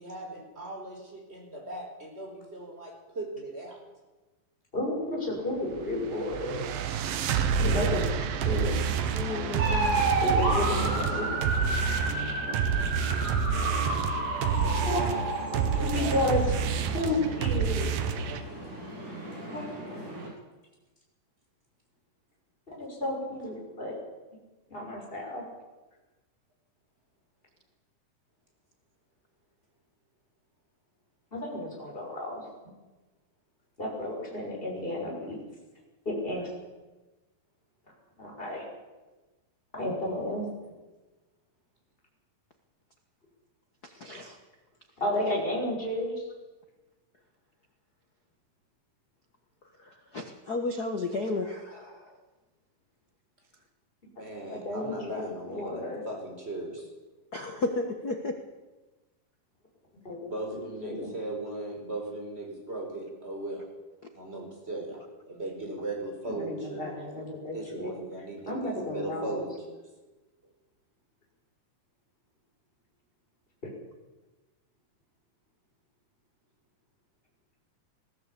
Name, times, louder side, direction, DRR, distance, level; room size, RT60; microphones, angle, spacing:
voice 1, 0.0-3.8 14.4-16.5 54.2-56.9 60.3-63.7 64.1-67.0 67.5-69.8, right 2 dB, 15° right, 2 dB, 4.9 m, -38 dB
voice 2, 4.7-6.6 7.6-8.0 8.4-8.8 9.3-9.4 10.2-11.3 14.8-15.0 15.8-16.4 16.9-17.9 19.5-19.7 22.7-24.0 24.7-25.4 31.3-32.4 33.8-35.4 36.0-36.5 38.2-38.6 39.7-40.4 45.0-46.2 54.2-54.3 54.5-56.0 60.0-60.2 60.5-61.1 66.3-67.9 68.5-69.4, left 1 dB, 15° left, -2 dB, 6.3 m, -32 dB
sound 1, 5.7-18.4, right 6 dB, 85° right, 3.1 m, -29 dB
voice 3, 9.1-10.2 43.9-44.4 49.8-52.2 57.3-58.4, left 2 dB, 60° left, 5 dB, 1.0 m, -33 dB
sound 2, 9.6-20.3, right 2 dB, 55° right, 6.4 m, -32 dB
20.5 x 15.5 x 8.4 m, 1.2 s
omnidirectional pair, 4.1 m